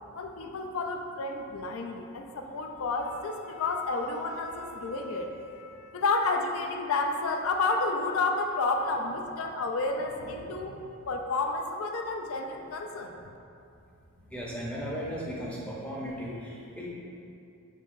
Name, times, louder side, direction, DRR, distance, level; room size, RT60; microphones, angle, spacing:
voice 1, 0.1-13.3, left 3 dB, 70° left, 4 dB, 0.4 m, -31 dB
voice 2, 14.3-16.9, equal, 5° left, -5 dB, 0.5 m, -36 dB
5.4 x 3.9 x 2.5 m, 2.6 s
head